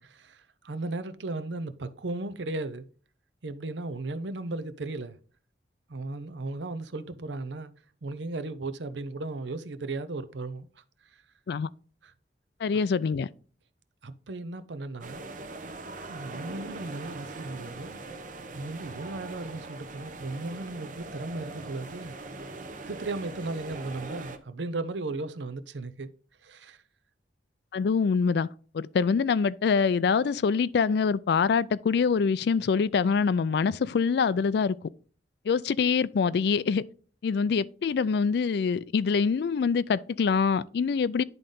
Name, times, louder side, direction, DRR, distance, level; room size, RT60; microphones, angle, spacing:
voice 1, 0.0-2.9 3.4-5.2 5.9-7.7 8.0-11.2 12.0-12.1 14.0-15.2 16.1-18.0 18.5-22.1 22.9-26.1 26.4-26.8, right 2 dB, 80° right, 0.7 m, -36 dB
voice 2, 12.6-13.3 27.7-28.5 28.7-34.9 35.5-36.8 37.2-41.2, left 5 dB, 65° left, 0.3 m, -25 dB
sound 1, 15.0-24.4, right 2 dB, 45° right, 0.8 m, -41 dB
10.5 x 3.9 x 3.7 m
head